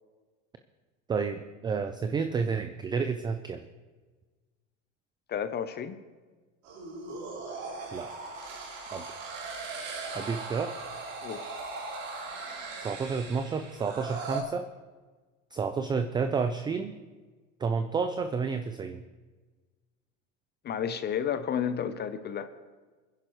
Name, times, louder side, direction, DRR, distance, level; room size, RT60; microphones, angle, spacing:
voice 1, 1.1-3.6 7.9-8.1 8.9-9.2 10.1-10.8 12.8-14.7 15.5-17.0 17.6-19.0, right 5 dB, 10° right, 8 dB, 0.4 m, -30 dB
voice 2, 5.3-6.0 11.2-11.5 20.6-22.5, left 8 dB, 25° left, 11 dB, 0.7 m, -31 dB
sound 1, 6.6-14.4, right 3 dB, 75° right, 3.9 m, -39 dB
20.5 x 10.5 x 3.1 m, 1.3 s
supercardioid pair, 120°, 38 cm